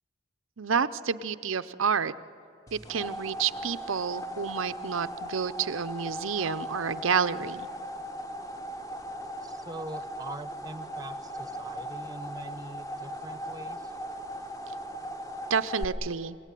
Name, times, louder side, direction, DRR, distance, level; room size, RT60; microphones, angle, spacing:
voice 1, 0.6-2.1 2.7-7.7 15.5-16.4, right 6 dB, 80° right, 13 dB, 0.7 m, -29 dB
sound 1, 2.7-15.8, equal, 15° left, 1.4 m, -38 dB
voice 2, 9.4-14.0, right 2 dB, 20° right, 12 dB, 0.9 m, -43 dB
27.0 x 17.5 x 10.0 m, 2.8 s
head